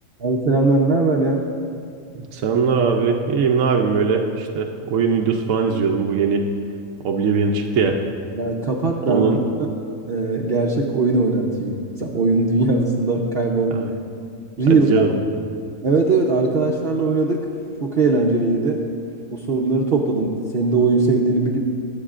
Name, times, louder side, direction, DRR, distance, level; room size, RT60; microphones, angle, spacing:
voice 1, 0.2-1.4 8.3-9.2 9.6-9.7 10.1-13.9 14.6-15.1 15.8-17.5 17.8-18.8 19.3-21.6, right 3 dB, 50° right, -2 dB, 0.9 m, -20 dB
voice 2, 2.1-6.5 7.0-8.0 9.1-9.4 14.7-15.1, right 5 dB, 70° right, 2 dB, 1.0 m, -20 dB
23.0 x 8.7 x 2.5 m, 2.4 s
omnidirectional pair, 1.5 m